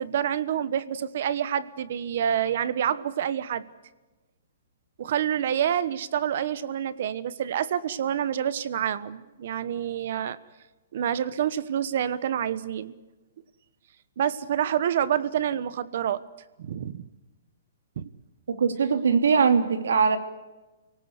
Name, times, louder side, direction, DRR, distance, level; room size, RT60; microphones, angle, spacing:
voice 1, 0.0-3.6 5.0-10.4 10.9-12.9 14.2-16.2 16.6-17.0 18.0-18.1, right 9 dB, 45° right, 16 dB, 1.1 m, -27 dB
voice 2, 18.5-20.2, right 5 dB, 90° right, 8 dB, 2.9 m, -21 dB
29.5 x 18.5 x 8.2 m, 1.1 s
hypercardioid pair, 175°, 0 cm